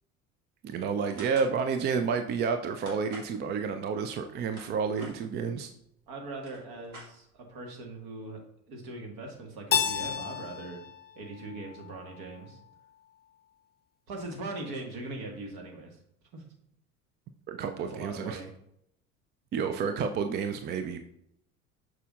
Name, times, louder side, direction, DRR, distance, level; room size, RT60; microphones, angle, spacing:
voice 1, 0.6-5.7 17.5-18.4 19.5-21.0, right 5 dB, 25° right, 7 dB, 0.4 m, -30 dB
sound 1, 1.2-1.5 2.8-3.3 4.2-5.1 6.0-6.1 6.3-7.5, right 1 dB, 85° right, 1.8 m, -47 dB
voice 2, 6.1-8.4 8.7-10.8 11.2-12.6 14.1-16.0 16.3-16.4 17.8-18.5, right 2 dB, 55° right, 2 dB, 1.7 m, -40 dB
Keyboard (musical), 9.7-12.5, left 8 dB, 25° left, 0.6 m, -32 dB
6.7 x 6.0 x 2.4 m, 0.75 s
figure-of-eight pair, 70°, 42 cm